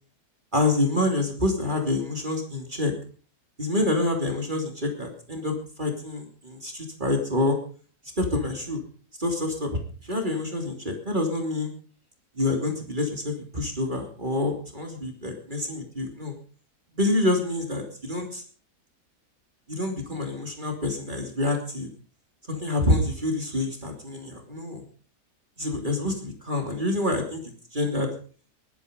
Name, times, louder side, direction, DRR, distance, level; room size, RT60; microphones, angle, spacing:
voice 1, 0.5-2.9 3.6-7.6 8.2-8.8 9.2-11.7 12.4-16.3 16.9-18.4 19.7-21.9 22.5-24.8 25.6-27.4 27.7-28.1, left 2 dB, 30° right, 2 dB, 3.1 m, -27 dB
18.0 x 12.0 x 5.2 m, 0.41 s
omnidirectional pair, 1.7 m